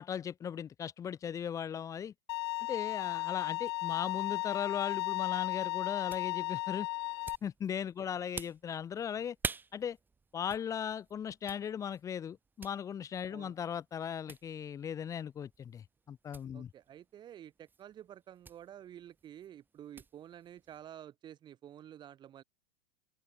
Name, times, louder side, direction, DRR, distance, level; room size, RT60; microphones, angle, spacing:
voice 1, 0.0-2.1 2.7-6.9 7.4-9.4 9.7-10.0 10.3-16.7, left 8 dB, 20° left, 0.7 m, -38 dB
Bowed string instrument, 2.3-7.3, left 19 dB, 65° left, 0.8 m, -35 dB
sound 1, 5.3-20.9, right 4 dB, 15° right, 1.8 m, -49 dB
voice 2, 16.5-22.4, right 10 dB, 30° right, 4.2 m, -51 dB
open air
hypercardioid pair, 120°, 14 cm